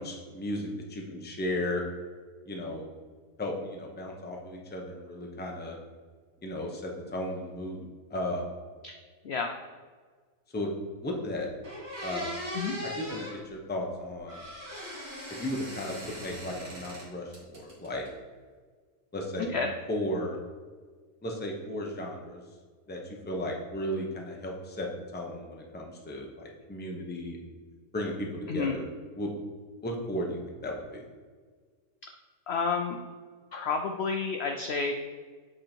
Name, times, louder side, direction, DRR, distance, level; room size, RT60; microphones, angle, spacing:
voice 1, 0.0-1.8 2.5-2.9 3.4-5.8 6.4-8.5 10.5-10.7 11.0-11.5 12.0-12.4 12.8-14.4 15.3-18.0 19.1-19.5 19.9-20.4 21.2-22.4 22.9-27.4 27.9-28.8 29.1-29.3 29.8-31.0, left 1 dB, 10° left, 0 dB, 0.6 m, -35 dB
voice 2, 9.2-9.6 12.5-12.7 19.5-19.7 28.5-28.8 32.5-33.0 33.5-34.9, left 5 dB, 65° left, 4 dB, 0.6 m, -30 dB
sound 1, 11.1-11.2 11.6-13.4 14.3-17.1 17.3-18.1, equal, 45° right, 2.0 m, -39 dB
7.6 x 3.7 x 4.4 m, 1.6 s
omnidirectional pair, 1.6 m